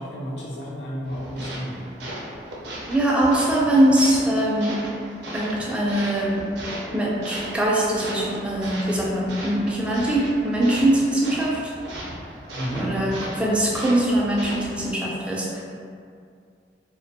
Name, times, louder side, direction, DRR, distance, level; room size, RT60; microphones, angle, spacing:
voice 1, 0.0-1.9 12.6-12.9, equal, 70° left, -6 dB, 0.6 m, -31 dB
sound 1, 1.1-14.9, right 1 dB, 70° right, 0.5 m, -37 dB
voice 2, 2.9-4.8 5.3-6.3 6.9-11.7 12.7-15.6, right 1 dB, 5° right, -5 dB, 0.3 m, -22 dB
2.6 x 2.1 x 2.7 m, 2.3 s
head